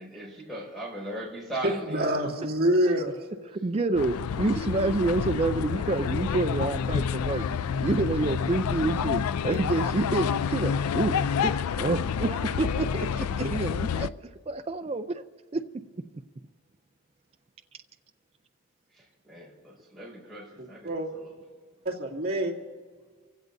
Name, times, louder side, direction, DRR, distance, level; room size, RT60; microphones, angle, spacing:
voice 1, 0.0-2.2 18.9-21.3, right 1 dB, ahead, -3 dB, 5.5 m, -39 dB
voice 2, 1.6-3.1 13.4-13.5 20.6-21.1 21.8-22.5, right 1 dB, 45° right, -4 dB, 2.5 m, -26 dB
voice 3, 3.5-7.5 7.8-11.2 11.4-14.1 14.5-15.2 15.5-15.6, right 2 dB, 30° right, 7 dB, 0.4 m, -28 dB
sound 1, 4.0-14.1, left 7 dB, 90° left, 0.4 m, -28 dB
28.5 x 16.0 x 2.6 m, 1.6 s
head